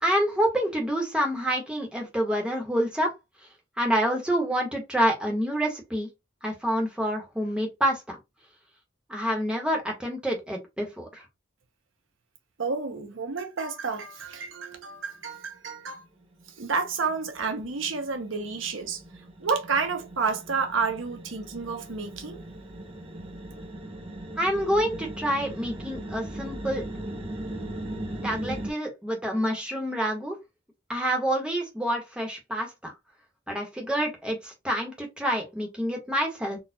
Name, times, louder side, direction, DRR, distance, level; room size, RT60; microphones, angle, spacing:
voice 1, 0.0-3.1 3.8-6.1 6.4-8.2 9.1-11.2 24.4-26.8 28.2-30.3 30.9-32.9 33.5-36.6, equal, 5° right, 1.1 m, -27 dB
voice 2, 12.6-16.0 16.6-19.0 19.4-22.4, right 5 dB, 80° right, 0.8 m, -30 dB
sound 1, 15.4-15.6 15.9-28.7, right 1 dB, 30° right, 0.7 m, -39 dB
4.1 x 2.4 x 2.7 m
head